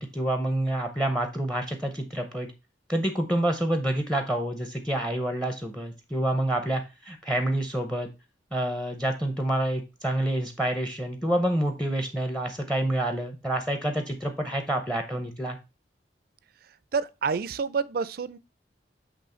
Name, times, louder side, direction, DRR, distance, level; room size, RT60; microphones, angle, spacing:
voice 1, 0.0-2.5 2.9-8.1 8.5-15.6, right 1 dB, 5° left, 0.6 m, -28 dB
voice 2, 16.9-18.4, right 5 dB, 55° right, 0.4 m, -28 dB
8.0 x 3.1 x 4.3 m
head